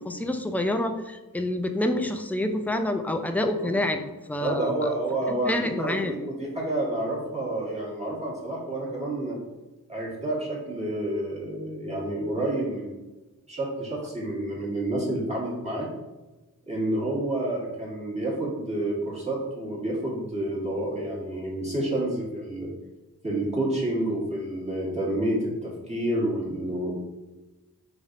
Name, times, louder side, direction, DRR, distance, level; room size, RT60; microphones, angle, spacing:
voice 1, 0.1-4.0 4.3-4.9 5.5-6.1, left 1 dB, 5° left, 6 dB, 0.3 m, -27 dB
voice 2, 4.4-9.4 9.9-13.0 13.5-15.9 16.7-22.7 23.2-27.0, right 1 dB, 20° right, -6 dB, 1.3 m, -29 dB
4.0 x 3.3 x 2.4 m, 1.1 s
wide cardioid pair, 55°, 35 cm